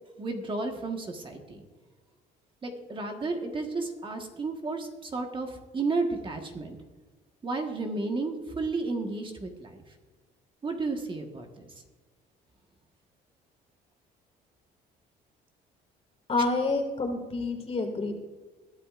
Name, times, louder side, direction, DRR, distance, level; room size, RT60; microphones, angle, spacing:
voice 1, 0.2-1.6 2.6-6.8 7.4-9.8 10.6-11.7, right 3 dB, 30° right, 3 dB, 1.5 m, -32 dB
voice 2, 16.3-18.1, left 3 dB, 35° left, 3 dB, 2.4 m, -28 dB
21.0 x 11.5 x 2.5 m, 1.3 s
cardioid pair, 110°, 17 cm